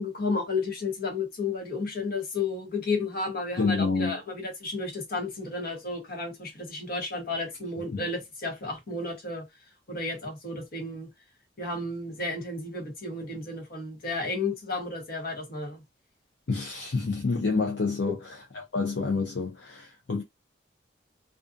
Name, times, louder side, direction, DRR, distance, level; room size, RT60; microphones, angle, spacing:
voice 1, 0.0-9.4 9.9-11.1 11.6-15.8, left 3 dB, 55° left, 1.1 m, -32 dB
voice 2, 3.6-4.2 7.9-8.1 16.5-20.2, left 4 dB, 70° left, 0.6 m, -28 dB
2.5 x 2.3 x 2.5 m
head